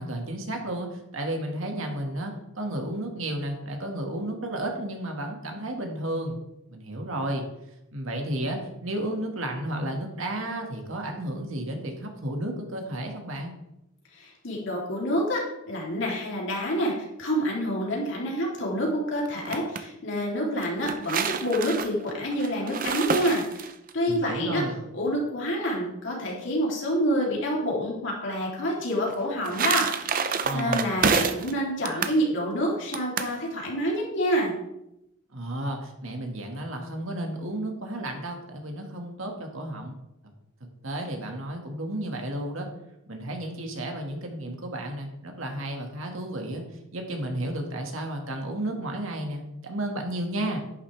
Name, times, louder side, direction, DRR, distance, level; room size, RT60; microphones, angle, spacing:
voice 1, 0.0-6.4 6.7-7.4 7.9-13.5 24.1-24.8 30.4-31.0 35.3-39.9 40.8-42.7 43.1-46.6 46.9-50.6, right 1 dB, 80° right, 2 dB, 2.0 m, -32 dB
voice 2, 14.1-16.9 17.2-24.6 24.9-34.6, equal, 65° left, -3 dB, 3.2 m, -28 dB
sound 1, 19.2-19.8 20.6-23.9 29.1-31.5 31.8-32.2 32.9-33.3, right 5 dB, 40° right, 0.6 m, -28 dB
11.0 x 9.8 x 3.4 m, 0.85 s
head